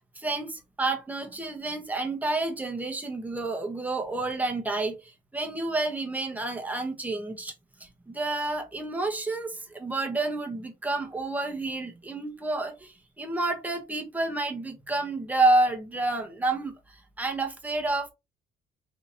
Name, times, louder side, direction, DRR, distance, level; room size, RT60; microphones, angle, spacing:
voice 1, 0.1-7.5 7.8-18.1, right 2 dB, 10° right, 1.1 m, -29 dB
4.0 x 2.8 x 2.8 m
cardioid pair, 110°, 17 cm